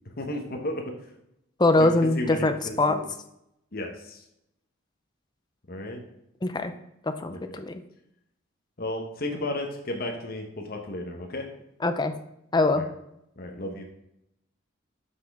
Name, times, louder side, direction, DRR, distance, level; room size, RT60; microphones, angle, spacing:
voice 1, 0.2-0.9 1.8-3.0 3.7-4.2 5.7-6.0 7.3-7.4 8.8-11.5 12.7-12.9 13.4-13.9, left 1 dB, 50° left, 3 dB, 1.1 m, -33 dB
voice 2, 1.6-2.9 6.4-6.7 7.2-7.7 11.8-12.1 12.5-12.8, left 2 dB, 20° left, 7 dB, 0.5 m, -23 dB
7.6 x 6.0 x 3.6 m, 0.82 s
head